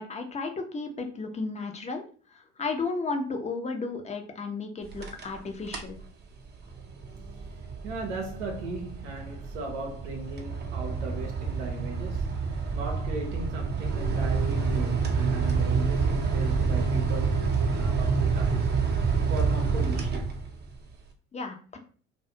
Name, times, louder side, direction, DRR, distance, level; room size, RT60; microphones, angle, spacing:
voice 1, 0.0-2.1 2.3-6.0 21.3-21.8, left 3 dB, 20° left, 0.5 m, -33 dB
sound 1, 4.8-5.4 5.7-6.0 6.5-20.7, right 5 dB, 30° right, 0.5 m, -28 dB
voice 2, 7.8-12.3 12.7-18.7 19.3-20.3, right 3 dB, 85° right, 0.6 m, -37 dB
2.3 x 2.2 x 2.7 m
hypercardioid pair, 60°, 35 cm